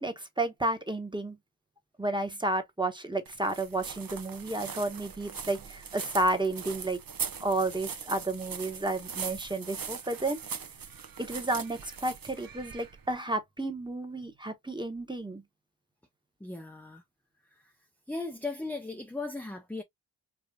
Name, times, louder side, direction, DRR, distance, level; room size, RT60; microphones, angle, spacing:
voice 1, 0.0-1.4 2.0-7.0 7.4-10.4 11.2-15.4, right 2 dB, 10° right, 1.0 m, -31 dB
sound 1, 3.3-13.1, right 7 dB, 60° right, 0.6 m, -41 dB
voice 2, 16.4-17.0 17.5-17.7 18.1-19.8, left 3 dB, 5° left, 0.5 m, -37 dB
4.9 x 2.4 x 2.2 m
wide cardioid pair, 45°, 40 cm